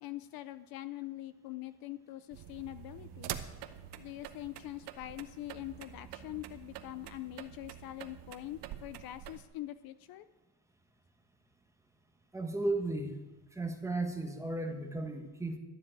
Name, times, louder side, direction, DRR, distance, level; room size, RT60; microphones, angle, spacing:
voice 1, 0.0-3.4 4.0-10.3, left 15 dB, 55° left, 13 dB, 0.6 m, -44 dB
sound 1, 2.3-9.4, right 11 dB, 65° right, 1.1 m, -46 dB
voice 2, 12.3-13.2 13.5-15.6, right 2 dB, 5° right, 4 dB, 1.2 m, -35 dB
12.5 x 7.5 x 8.8 m, 1.1 s
cardioid pair, 155°, 43 cm